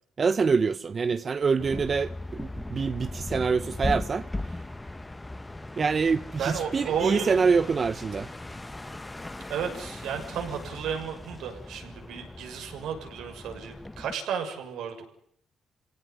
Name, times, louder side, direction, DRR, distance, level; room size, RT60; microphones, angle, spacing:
voice 1, 0.2-4.6 5.8-8.3, right 5 dB, 40° right, 0.9 m, -26 dB
sound 1, 1.6-14.1, left 2 dB, 15° left, 1.4 m, -38 dB
voice 2, 6.4-7.5 9.5-15.0, right 7 dB, 85° right, 6.5 m, -33 dB
26.5 x 17.5 x 9.5 m
cardioid pair, 90°, 0 cm